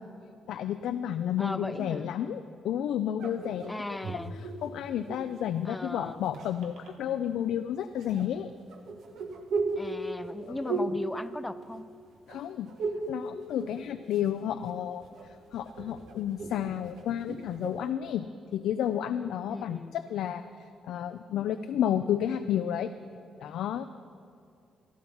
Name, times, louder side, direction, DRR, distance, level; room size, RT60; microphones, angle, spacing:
voice 1, 0.5-8.5 10.5-10.8 12.3-12.7 13.1-15.0 15.5-20.4 20.8-22.9 23.4-23.9, left 10 dB, 80° left, 9 dB, 0.3 m, -31 dB
voice 2, 1.4-2.1 3.7-4.4 5.6-6.2 9.8-11.9 19.5-20.0, left 1 dB, 10° left, 13 dB, 0.5 m, -37 dB
sound 1, 3.2-5.4 6.1-6.9 8.0-12.0 12.3-13.1 13.4-14.3 14.7-17.9, right 3 dB, 75° right, 1.4 m, -36 dB
12.0 x 12.0 x 5.5 m, 2.5 s
cardioid pair, 90°, 0 cm